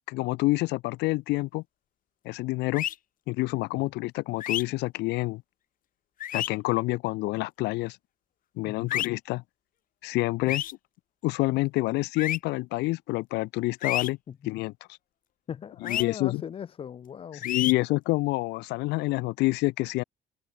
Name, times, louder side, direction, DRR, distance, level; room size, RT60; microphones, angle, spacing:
voice 1, 0.1-1.6 2.2-2.9 3.3-5.4 6.3-8.0 8.6-9.4 10.0-10.6 11.2-14.2 14.4-14.7 15.8-16.4 17.3-20.0, left 21 dB, 85° left, 0.6 m, -27 dB
sound 1, 2.7-2.9 4.4-4.6 6.2-6.5 8.9-9.1 10.5-10.7 12.2-12.4 13.8-14.1 15.8-16.0 17.4-17.7, left 12 dB, 55° left, 0.8 m, -29 dB
voice 2, 15.5-17.5, left 8 dB, 35° left, 0.4 m, -39 dB
cardioid pair, 110°, 17 cm